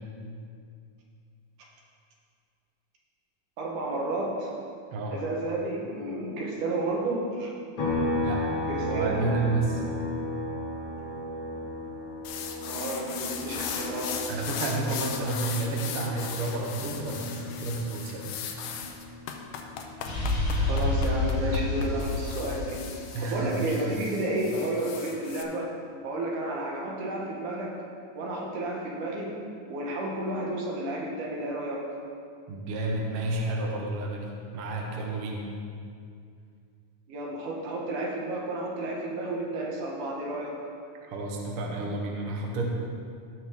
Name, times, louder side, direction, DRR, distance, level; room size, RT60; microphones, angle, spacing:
voice 1, 3.6-4.5 5.1-7.5 8.7-9.3 12.7-14.5 20.6-22.8 23.2-25.7 26.0-27.7 28.2-29.4 29.7-31.8 37.1-40.5, right 2 dB, 75° right, -2 dB, 2.8 m, -31 dB
sound 1, 7.8-21.3 21.7-23.9, left 2 dB, 60° left, 3.4 m, -36 dB
voice 2, 8.8-9.9 14.3-18.4 23.1-23.9 32.5-35.4 41.1-42.6, right 2 dB, 60° right, -1 dB, 1.7 m, -31 dB
sound 2, 12.2-25.4, left 7 dB, 90° left, 2.3 m, -38 dB
sound 3, 20.1-23.8, left 2 dB, 45° left, 1.8 m, -28 dB
16.5 x 6.2 x 3.7 m, 2.3 s
omnidirectional pair, 3.6 m